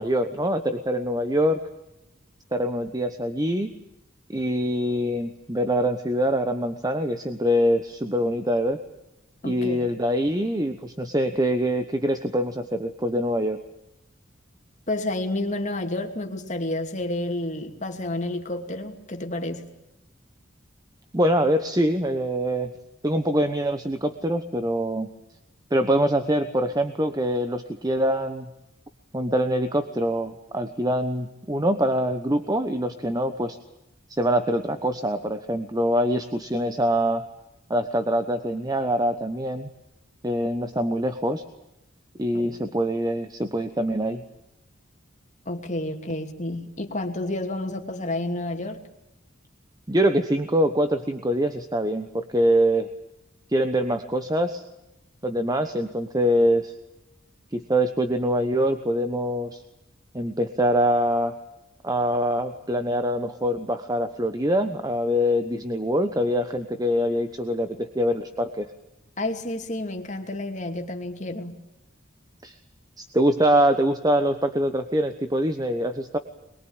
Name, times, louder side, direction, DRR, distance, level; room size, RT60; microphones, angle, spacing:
voice 1, 0.0-1.6 2.5-3.8 4.3-8.8 9.4-13.6 21.1-22.7 23.0-25.1 25.7-28.5 29.1-33.6 34.1-37.3 37.7-39.7 40.2-41.4 42.2-44.2 49.9-52.9 53.5-54.6 55.2-56.7 57.5-59.6 60.1-61.4 61.8-68.7 72.4-72.6 73.0-76.2, equal, 20° right, 8 dB, 1.1 m, -24 dB
voice 2, 9.4-9.9 14.9-19.6 45.5-48.8 69.2-71.6, left 1 dB, 40° left, 4 dB, 2.7 m, -30 dB
23.5 x 22.5 x 8.8 m, 0.90 s
head